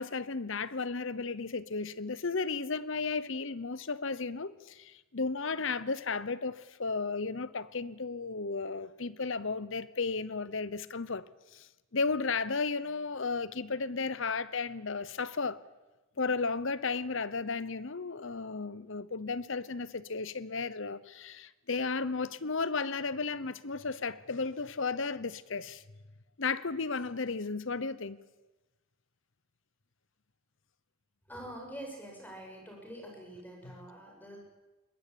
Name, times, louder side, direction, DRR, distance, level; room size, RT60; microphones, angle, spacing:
voice 1, 0.0-11.2 11.5-15.6 16.2-25.8 26.4-28.2, left 4 dB, 60° left, 0.9 m, -34 dB
voice 2, 31.3-34.4, right 1 dB, 10° left, 6.8 m, -45 dB
21.5 x 20.0 x 8.7 m
head